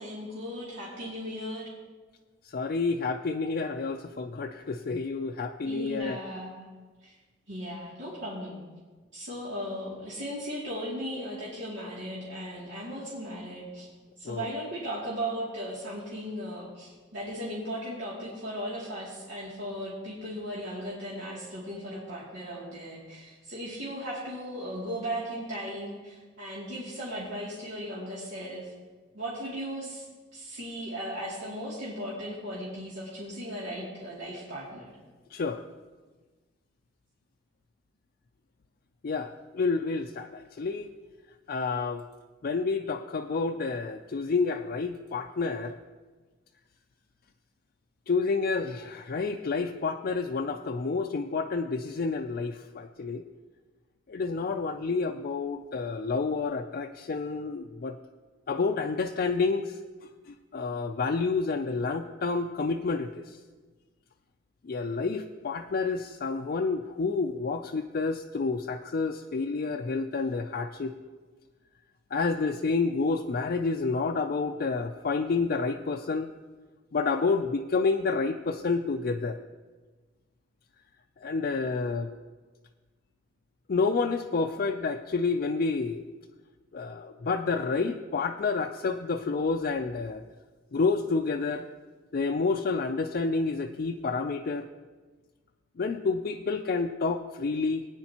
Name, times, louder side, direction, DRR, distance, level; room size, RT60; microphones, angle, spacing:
voice 1, 0.0-1.7 5.6-6.7 7.0-7.1 7.5-8.6 9.1-13.9 14.2-28.7 29.1-30.1 30.3-34.9, equal, 80° right, -8 dB, 2.6 m, -37 dB
voice 2, 2.5-6.2 14.2-14.5 35.3-35.6 39.0-40.9 41.5-42.0 42.4-45.7 48.1-53.2 54.1-58.0 58.5-59.8 60.3-63.3 64.6-70.9 72.1-76.3 76.9-79.4 81.2-82.1 83.7-86.0 86.7-90.2 90.7-91.7 92.1-94.7 95.8-97.8, left 4 dB, 55° left, 3 dB, 0.4 m, -29 dB
19.5 x 9.6 x 2.9 m, 1.3 s
head